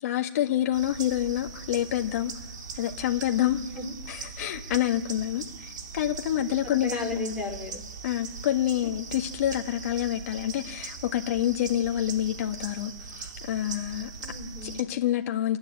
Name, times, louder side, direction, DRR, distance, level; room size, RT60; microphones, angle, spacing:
voice 1, 0.0-2.3 2.7-3.6 4.1-5.4 5.9-7.3 8.0-14.1 14.9-15.6, left 12 dB, 45° left, 1.7 m, -27 dB
sound 1, 0.7-14.8, right 5 dB, 65° right, 2.6 m, -40 dB
voice 2, 6.6-7.8 8.8-8.9 14.2-14.8, left 1 dB, 10° right, 3.7 m, -35 dB
28.5 x 11.5 x 9.7 m
hypercardioid pair, 145°, 11 cm